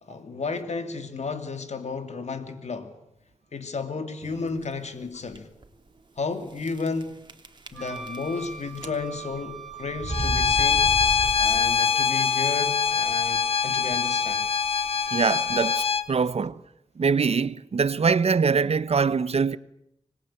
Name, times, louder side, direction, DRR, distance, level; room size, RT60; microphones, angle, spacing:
voice 1, 0.0-2.9 3.5-5.5 6.2-7.2 7.7-11.0 11.4-14.5, left 4 dB, 65° left, 2.8 m, -33 dB
sound 1, 4.2-4.6 5.3-5.4 5.6-5.7 6.6-7.0 7.3-8.4 8.7-9.3 10.0-11.9, right 2 dB, 40° right, 3.1 m, -33 dB
Wind instrument woodwind instrument, 7.7-16.1, right 4 dB, ahead, 5.2 m, -41 dB
Bowed string instrument, 10.1-16.0, left 6 dB, 50° left, 1.5 m, -23 dB
voice 2, 15.1-16.6 17.0-19.6, right 5 dB, 55° right, 1.0 m, -23 dB
25.5 x 21.0 x 9.0 m
wide cardioid pair, 75°, 13 cm